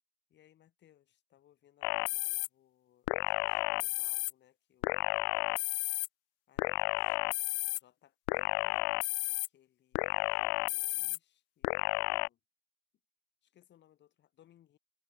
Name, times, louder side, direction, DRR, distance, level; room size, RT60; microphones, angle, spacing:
voice 1, 0.3-5.2 6.5-8.9 9.2-12.4 13.4-14.8, left 11 dB, 30° left, 3.8 m, -66 dB
sound 1, 1.8-2.5 3.1-4.3 4.8-6.1 6.6-7.8 8.3-9.5 9.9-11.2 11.6-12.3, left 29 dB, 50° left, 0.5 m, -32 dB
supercardioid pair, 145°, 37 cm